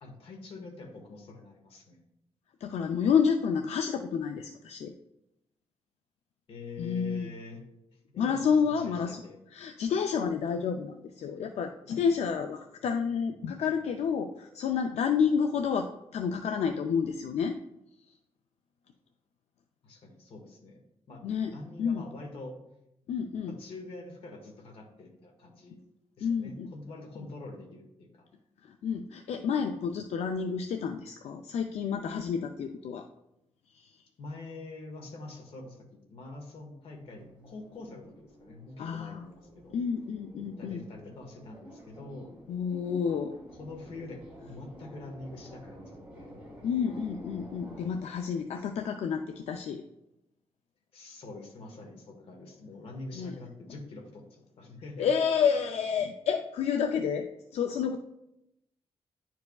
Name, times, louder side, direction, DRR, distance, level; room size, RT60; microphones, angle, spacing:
voice 1, 0.0-2.0 6.5-7.6 7.9-9.4 19.8-22.5 23.4-25.8 26.2-28.2 34.2-39.7 40.3-42.3 43.5-46.3 48.6-48.7 50.9-55.1, left 3 dB, 65° left, 1 dB, 1.5 m, -45 dB
voice 2, 2.6-4.9 6.8-7.3 8.2-9.2 9.5-17.6 21.2-21.5 21.8-22.0 23.1-23.6 26.2-26.7 28.6-33.1 33.7-33.9 38.8-39.3 39.7-40.8 42.5-43.4 46.6-49.8 53.2-53.3 55.0-58.0, left 6 dB, 85° left, 5 dB, 0.4 m, -29 dB
sound 1, 36.9-48.4, equal, 10° right, 2.5 m, -50 dB
10.5 x 4.6 x 2.3 m, 0.87 s
wide cardioid pair, 160°, 11 cm